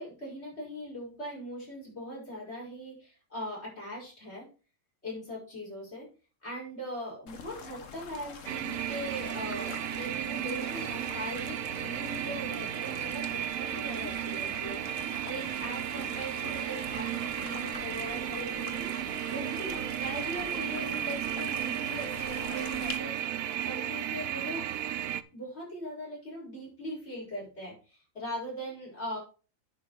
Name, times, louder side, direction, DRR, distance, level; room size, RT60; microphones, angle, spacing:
voice 1, 0.0-4.5 5.0-6.1 6.4-24.7 25.3-29.2, equal, 50° left, -4 dB, 5.3 m, -40 dB
sound 1, 7.3-23.0, left 6 dB, 65° left, 1.5 m, -45 dB
sound 2, 8.5-25.2, right 11 dB, 80° right, 1.1 m, -34 dB
9.9 x 5.5 x 4.6 m, 0.34 s
omnidirectional pair, 1.4 m